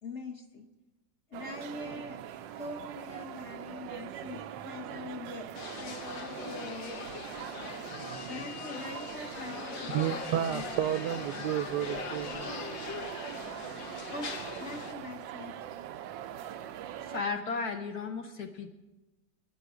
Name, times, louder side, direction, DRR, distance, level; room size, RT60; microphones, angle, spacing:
voice 1, 0.0-0.7 1.3-2.2 2.6-6.9 8.3-11.1 11.3-11.5 14.1-15.5, left 3 dB, 45° left, 1.2 m, -43 dB
sound 1, 1.3-17.2, right 11 dB, 90° right, 1.4 m, -42 dB
sound 2, 5.5-14.9, left 4 dB, 85° left, 1.8 m, -41 dB
voice 2, 9.9-12.6, right 11 dB, 75° right, 1.2 m, -31 dB
voice 3, 17.0-18.7, left 4 dB, 60° left, 1.4 m, -34 dB
22.5 x 10.5 x 4.9 m
omnidirectional pair, 2.0 m